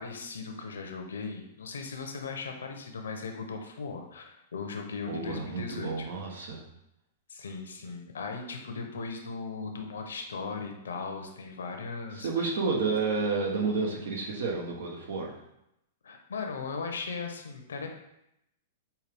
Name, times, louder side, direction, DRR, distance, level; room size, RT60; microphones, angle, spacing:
voice 1, 0.0-6.1 7.3-12.5 16.0-17.9, left 4 dB, 90° left, 4 dB, 0.6 m, -38 dB
voice 2, 5.1-6.6 12.1-15.3, right 4 dB, 70° right, -1 dB, 1.0 m, -30 dB
5.5 x 2.3 x 3.4 m, 0.83 s
hypercardioid pair, 130°, 0 cm